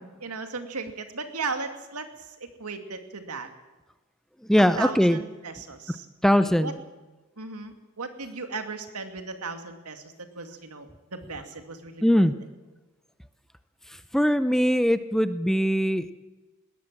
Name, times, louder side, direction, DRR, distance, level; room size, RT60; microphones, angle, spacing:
voice 1, 0.2-3.5 4.8-6.1 6.4-6.7 7.4-12.3, right 4 dB, 85° right, 7 dB, 2.3 m, -36 dB
voice 2, 4.5-5.2 6.2-6.8 12.0-12.3 13.9-16.1, equal, ahead, 11 dB, 0.7 m, -21 dB
20.5 x 17.0 x 7.5 m, 1.2 s
head